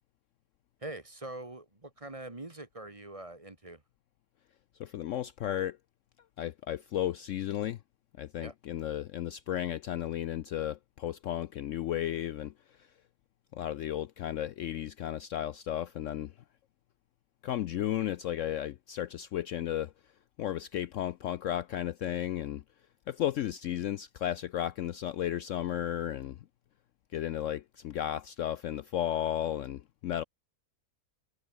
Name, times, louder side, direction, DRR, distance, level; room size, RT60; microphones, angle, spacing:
voice 1, 0.8-3.8 8.4-8.5, right 2 dB, 25° right, 1.5 m, -43 dB
voice 2, 4.8-5.8 6.4-7.8 8.2-12.9 13.5-16.3 17.4-19.9 20.4-22.6 23.1-26.4 27.1-30.2, left 11 dB, 65° left, 0.8 m, -34 dB
omnidirectional pair, 1.6 m